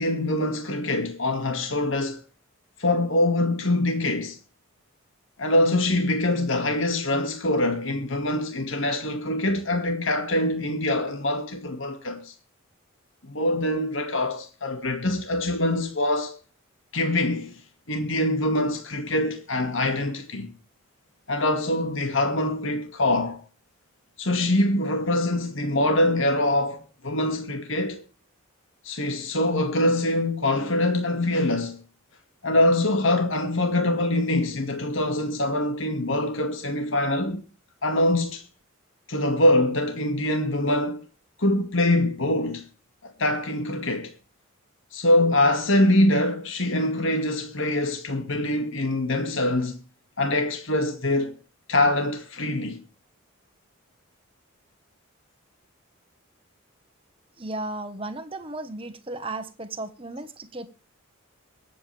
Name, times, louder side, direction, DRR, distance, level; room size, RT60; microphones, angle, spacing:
voice 1, 0.0-2.2 2.8-4.4 5.4-12.3 13.2-16.3 16.9-17.5 17.9-20.5 21.3-23.4 24.2-28.0 28.8-31.8 32.4-37.4 37.8-38.5 39.1-41.0 41.4-42.6 43.0-44.1 44.9-49.8 50.2-51.3 51.7-52.8, left 1 dB, 65° left, 2.2 m, -24 dB
voice 2, 57.4-60.7, right 2 dB, 25° right, 1.4 m, -35 dB
23.0 x 8.8 x 3.5 m
head